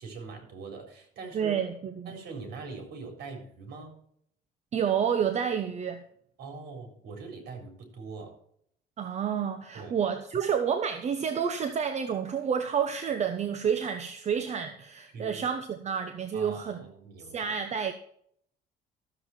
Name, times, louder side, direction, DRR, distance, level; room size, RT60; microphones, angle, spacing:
voice 1, 0.0-1.5 2.1-4.0 6.4-8.4 9.7-9.9 15.1-15.4 16.3-17.5, right 4 dB, 70° right, 3.8 m, -42 dB
voice 2, 1.3-1.7 2.0-2.1 4.7-6.0 9.0-16.8 17.3-17.9, right 7 dB, 40° right, 0.9 m, -29 dB
13.0 x 7.4 x 4.4 m
cardioid pair, 110°, 17 cm